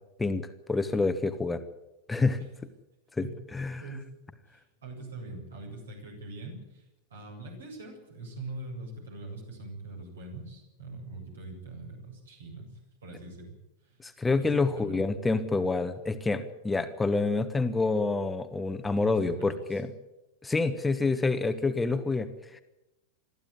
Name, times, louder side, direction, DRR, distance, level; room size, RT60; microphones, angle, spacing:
voice 1, 0.2-1.6 2.1-2.5 3.2-3.8 14.0-19.9 20.4-22.6, left 3 dB, 10° left, 8 dB, 1.3 m, -28 dB
voice 2, 3.8-4.1 4.5-13.6 13.8-14.0 14.4-15.0 19.2-19.8, right 2 dB, 65° right, 1 dB, 7.8 m, -43 dB
22.5 x 14.5 x 9.8 m, 0.94 s
figure-of-eight pair, 90°, 0 cm